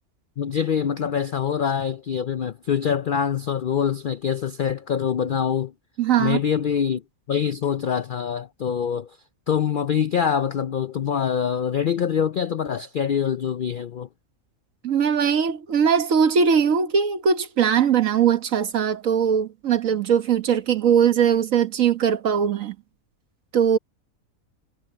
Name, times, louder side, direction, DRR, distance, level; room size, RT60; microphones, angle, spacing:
voice 1, 0.4-5.7 6.2-7.0 7.3-9.2 9.5-14.1, left 8 dB, 65° left, 0.5 m, -24 dB
voice 2, 6.0-6.4 14.8-22.7 23.5-23.8, right 7 dB, 70° right, 1.5 m, -20 dB
omnidirectional pair, 1.5 m